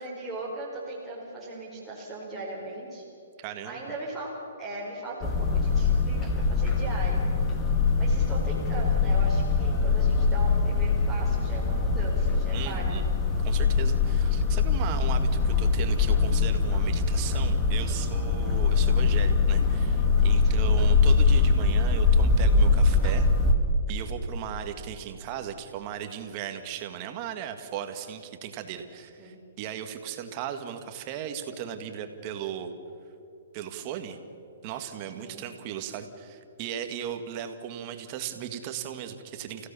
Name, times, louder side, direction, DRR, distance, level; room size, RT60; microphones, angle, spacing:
voice 1, 0.0-3.0 3.6-4.3 4.6-7.2 8.0-13.0 20.6-20.8 29.2-29.4 35.2-35.4, right 2 dB, ahead, -6 dB, 4.5 m, -38 dB
voice 2, 3.4-3.9 12.5-13.1 13.4-23.3 23.9-32.7 33.5-34.2 34.6-39.7, right 9 dB, 35° right, 7 dB, 2.1 m, -37 dB
sound 1, 5.2-23.5, left 4 dB, 20° left, 2.2 m, -23 dB
30.0 x 16.5 x 7.1 m, 2.9 s
hypercardioid pair, 150°, 0 cm